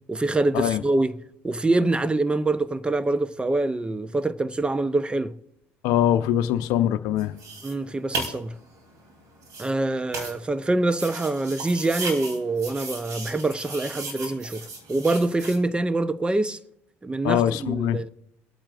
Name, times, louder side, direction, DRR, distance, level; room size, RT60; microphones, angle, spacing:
voice 1, 0.1-1.1 1.4-5.4 7.6-8.5 9.6-16.6 17.0-18.1, right 2 dB, 15° right, 0.7 m, -25 dB
voice 2, 5.8-7.3 17.2-18.0, left 11 dB, 70° left, 0.6 m, -22 dB
sound 1, 7.2-15.6, right 3 dB, 55° right, 3.2 m, -36 dB
26.5 x 8.8 x 2.5 m
hypercardioid pair, 75°, 7 cm